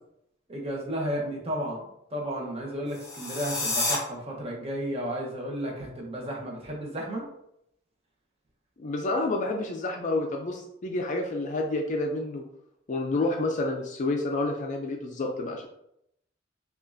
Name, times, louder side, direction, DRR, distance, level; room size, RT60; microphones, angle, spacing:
voice 1, 0.5-1.8 2.1-7.3, equal, 30° right, -2 dB, 0.9 m, -33 dB
sound 1, 2.9-4.0, left 2 dB, 15° left, 0.8 m, -29 dB
voice 2, 8.8-12.4 12.9-15.7, left 2 dB, 40° left, 2 dB, 0.4 m, -29 dB
5.3 x 2.4 x 2.5 m, 0.78 s
head